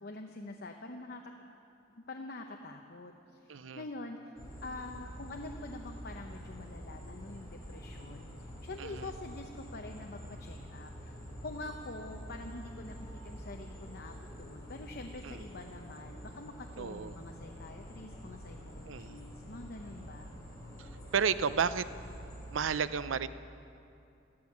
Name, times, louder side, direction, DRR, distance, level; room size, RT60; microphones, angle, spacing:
voice 1, 0.0-1.6 1.9-11.1 11.4-20.3, left 2 dB, 55° left, 3 dB, 0.8 m, -46 dB
voice 2, 3.5-3.8 8.8-9.1 15.2-15.4 16.8-17.2 18.9-19.2 20.8-21.8 22.5-23.3, right 6 dB, 85° right, 14 dB, 0.5 m, -32 dB
sound 1, 4.4-22.7, equal, 20° left, 3.5 m, -47 dB
14.5 x 13.5 x 7.3 m, 2.6 s
head